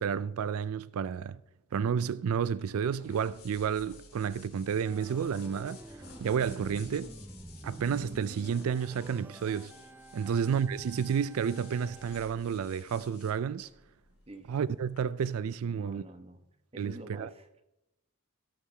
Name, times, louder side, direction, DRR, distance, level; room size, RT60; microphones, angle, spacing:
voice 1, 0.0-1.4 1.7-5.8 6.2-7.1 7.6-9.7 10.1-13.7 14.5-16.0 16.8-17.3, right 7 dB, 70° right, 0.4 m, -31 dB
sound 1, 2.6-15.0, left 4 dB, 75° left, 2.6 m, -55 dB
Organ, 4.8-12.2, right 1 dB, 10° right, 0.4 m, -49 dB
voice 2, 15.7-16.4 16.7-17.6, right 2 dB, 25° right, 1.0 m, -47 dB
18.5 x 6.4 x 3.3 m
head